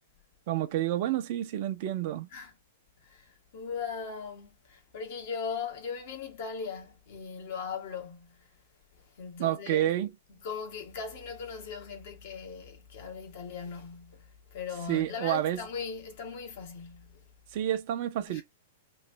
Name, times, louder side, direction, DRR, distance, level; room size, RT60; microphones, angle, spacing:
voice 1, 0.5-2.3 9.4-10.1 14.9-15.6 17.5-18.4, right 12 dB, 45° right, 0.5 m, -29 dB
voice 2, 3.0-8.5 9.0-9.9 10.4-17.3 18.3-18.4, left 6 dB, 50° left, 1.2 m, -39 dB
3.1 x 2.5 x 3.2 m
figure-of-eight pair, 105°, 0 cm